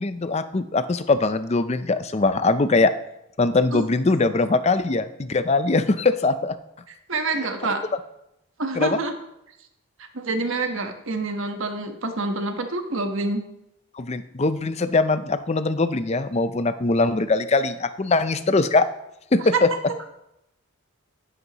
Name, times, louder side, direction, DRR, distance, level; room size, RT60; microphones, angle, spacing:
voice 1, 0.0-2.9 3.4-6.5 8.7-9.0 13.9-18.9 19.3-19.7, left 3 dB, 30° left, 11 dB, 0.5 m, -21 dB
voice 2, 7.1-7.8 8.6-9.1 10.1-13.4, right 2 dB, 65° right, 5 dB, 1.2 m, -27 dB
11.0 x 11.0 x 3.0 m, 0.84 s
head